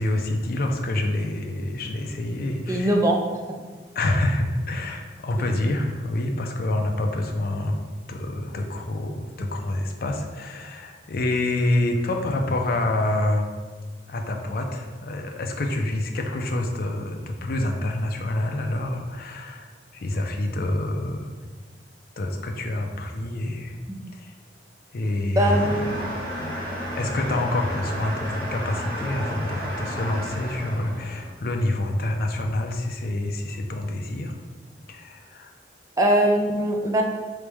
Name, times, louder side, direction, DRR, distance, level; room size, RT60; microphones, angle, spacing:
voice 1, 0.0-2.9 3.9-7.8 8.1-13.5 14.1-21.3 22.2-23.8 24.1-24.3 24.9-25.9 26.4-26.6 27.0-34.4 34.9-35.5, left 1 dB, 55° left, 2 dB, 0.4 m, -27 dB
voice 2, 2.7-3.2 3.5-3.6 5.4-5.5 23.9-24.0 25.4-25.9 36.0-37.0, right 1 dB, 20° right, 1 dB, 0.4 m, -21 dB
sound 1, 25.4-31.3, equal, 55° right, 1.4 m, -32 dB
4.0 x 3.2 x 3.4 m, 1.5 s
head